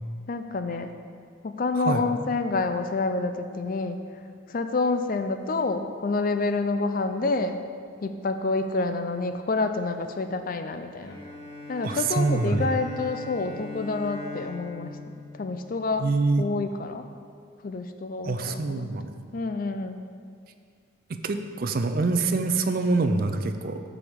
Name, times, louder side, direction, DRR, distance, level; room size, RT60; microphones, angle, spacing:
voice 1, 0.3-0.9 1.4-4.0 4.5-7.7 8.0-11.2 11.7-15.1 15.4-16.1 16.4-17.0 17.6-18.9 19.3-20.1, left 3 dB, 45° left, 8 dB, 0.4 m, -28 dB
Bowed string instrument, 11.0-16.5, left 2 dB, 20° left, 1.4 m, -41 dB
voice 2, 11.8-12.7 16.0-16.5 18.2-19.2 21.1-23.8, right 3 dB, 45° right, 8 dB, 0.4 m, -25 dB
13.5 x 4.8 x 3.6 m, 2.1 s
head